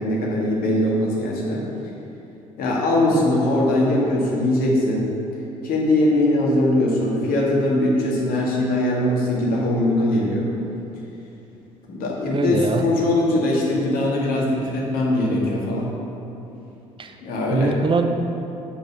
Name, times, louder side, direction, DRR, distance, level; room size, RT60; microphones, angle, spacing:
voice 1, 0.0-1.6 2.6-5.1 5.6-10.5 11.9-15.9 17.2-17.8, left 1 dB, 55° left, -3 dB, 1.9 m, -21 dB
voice 2, 12.3-12.9 17.0-17.1 17.5-18.0, right 3 dB, 30° right, 6 dB, 0.8 m, -22 dB
8.8 x 5.5 x 6.0 m, 2.9 s
figure-of-eight pair, 55°, 18 cm